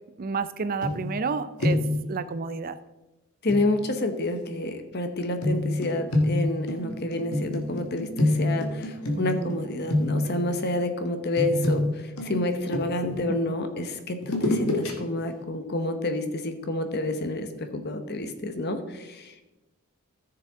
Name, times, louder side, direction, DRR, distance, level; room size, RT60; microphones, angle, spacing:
voice 1, 0.2-2.8 9.2-9.6 13.3-13.5, right 4 dB, 40° right, 13 dB, 0.4 m, -31 dB
sound 1, 0.8-1.3 1.6-2.1 3.5-3.7 5.4-9.6 9.9-10.4 11.4-13.2 14.2-14.9 15.3-15.4, left 1 dB, 75° left, 1.7 m, -26 dB
voice 2, 3.4-11.8 12.2-19.5, left 2 dB, 45° left, 8 dB, 1.0 m, -29 dB
14.5 x 6.8 x 3.6 m, 1.1 s
head